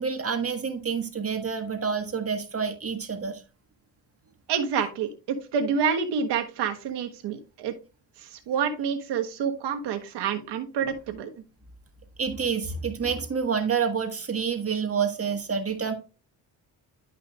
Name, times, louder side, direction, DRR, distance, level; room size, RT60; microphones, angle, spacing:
voice 1, 0.0-3.4 12.2-15.9, right 6 dB, 35° right, 5 dB, 1.6 m, -28 dB
voice 2, 4.5-7.7 8.3-11.3, right 6 dB, 80° right, 6 dB, 1.5 m, -28 dB
11.0 x 5.6 x 2.4 m, 0.32 s
cardioid pair, 85°, 41 cm